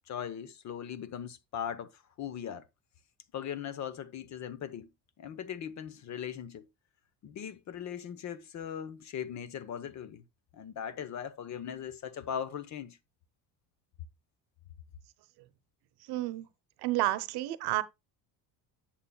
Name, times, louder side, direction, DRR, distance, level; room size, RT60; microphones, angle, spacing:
voice 1, 0.1-2.6 3.3-4.9 5.2-6.7 7.2-10.2 10.5-13.0, left 8 dB, 45° left, 0.9 m, -39 dB
voice 2, 16.0-16.5 16.8-17.8, right 17 dB, 70° right, 0.9 m, -30 dB
11.0 x 7.5 x 2.2 m
cardioid pair, 140°, 41 cm